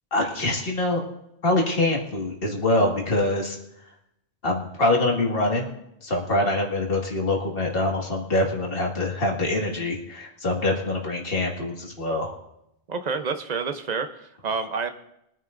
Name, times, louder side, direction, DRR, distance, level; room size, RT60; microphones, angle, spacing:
voice 1, 0.1-1.0 1.4-3.6 4.4-5.7 6.0-12.4, left 2 dB, 60° left, -1 dB, 2.2 m, -24 dB
voice 2, 12.9-14.9, right 5 dB, 45° right, 8 dB, 0.9 m, -28 dB
23.0 x 9.6 x 2.6 m, 0.81 s
omnidirectional pair, 1.1 m